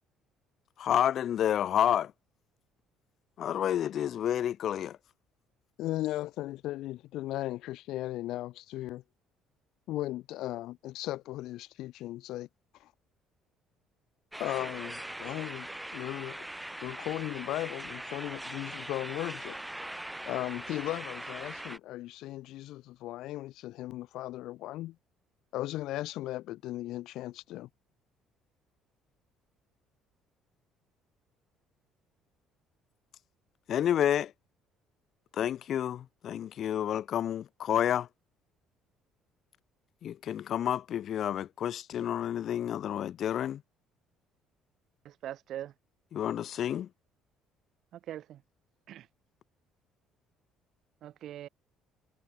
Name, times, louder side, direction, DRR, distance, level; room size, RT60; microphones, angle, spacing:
voice 1, 0.8-2.1 3.4-5.0 33.7-34.3 35.3-38.1 40.0-43.6 46.1-46.9, left 10 dB, 55° left, 1.6 m, -29 dB
voice 2, 5.8-9.0 9.9-12.5 12.8-12.9 14.4-16.5 16.8-19.6 20.3-25.0 25.5-27.7, left 16 dB, 75° left, 1.4 m, -37 dB
sound 1, 14.3-21.8, right 1 dB, 5° right, 5.2 m, -41 dB
voice 3, 45.0-45.7 47.9-48.4 48.9-49.1 51.0-51.5, right 12 dB, 60° right, 1.3 m, -41 dB
cardioid pair, 115°, 0 cm